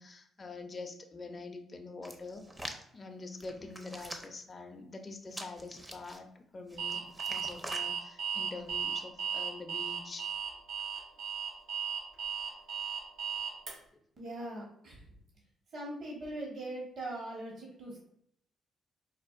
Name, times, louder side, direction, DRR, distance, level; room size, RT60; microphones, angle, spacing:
voice 1, 0.0-2.4 2.9-10.4 13.9-14.0, left 3 dB, 30° left, 4 dB, 0.5 m, -45 dB
Hands, 2.0-2.8 3.4-4.4 5.3-6.2 6.7-7.9 8.6-8.8, right 1 dB, 15° right, 0.5 m, -44 dB
Alarm, 6.8-13.7, right 7 dB, 80° right, 1.2 m, -36 dB
voice 2, 14.2-15.4 15.7-18.1, right 1 dB, 60° right, -2 dB, 1.1 m, -41 dB
4.3 x 2.4 x 2.4 m, 0.69 s
cardioid pair, 90°, 0 cm